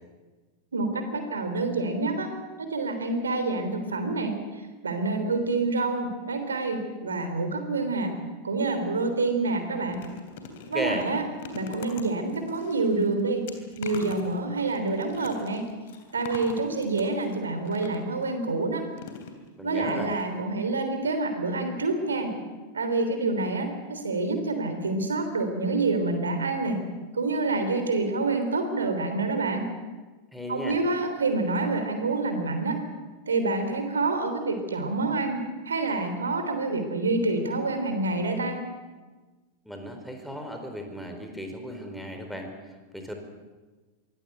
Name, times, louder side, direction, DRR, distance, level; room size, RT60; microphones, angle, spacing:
voice 1, 0.7-2.3 2.6-4.3 4.8-8.1 8.4-10.0 10.7-11.2 11.5-13.5 13.8-15.6 16.1-18.8 19.6-22.3 22.7-26.8 27.1-29.6 30.5-32.7 33.3-38.6, right 3 dB, 70° right, 7 dB, 3.4 m, -27 dB
sound 1, 8.9-9.1 9.5-18.2 18.9-19.7 20.1-20.2 20.5-20.6, left 5 dB, 55° left, 3.2 m, -44 dB
voice 2, 10.7-11.1 19.6-20.1 30.3-30.8 39.6-43.1, equal, ahead, 4 dB, 4.1 m, -35 dB
24.0 x 17.0 x 8.1 m, 1.3 s
figure-of-eight pair, 90°, 0 cm